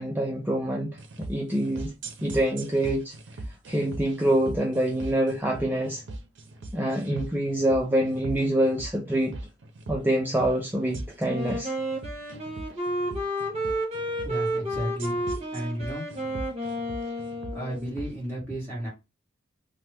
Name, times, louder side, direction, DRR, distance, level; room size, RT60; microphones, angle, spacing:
voice 1, 0.0-1.9 2.2-3.1 3.7-6.0 6.7-9.3 9.9-11.7, right 1 dB, 10° right, 0.4 m, -26 dB
sound 1, 1.0-18.1, right 2 dB, 65° right, 0.6 m, -40 dB
Wind instrument woodwind instrument, 11.2-17.9, equal, 35° right, 1.1 m, -31 dB
voice 2, 14.2-15.1 15.5-16.0 17.5-18.9, right 1 dB, 15° left, 1.5 m, -33 dB
2.9 x 2.1 x 3.3 m
head